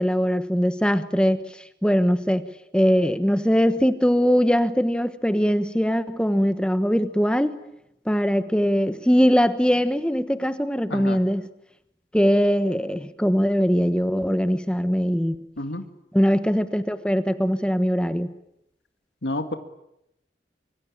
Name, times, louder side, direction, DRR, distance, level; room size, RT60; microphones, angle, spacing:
voice 1, 0.0-2.5 2.7-7.6 8.0-11.4 12.1-15.4 16.1-18.3, equal, 5° left, 1.2 m, -21 dB
voice 2, 19.2-19.5, left 2 dB, 85° left, 2.2 m, -29 dB
25.0 x 25.0 x 8.7 m
head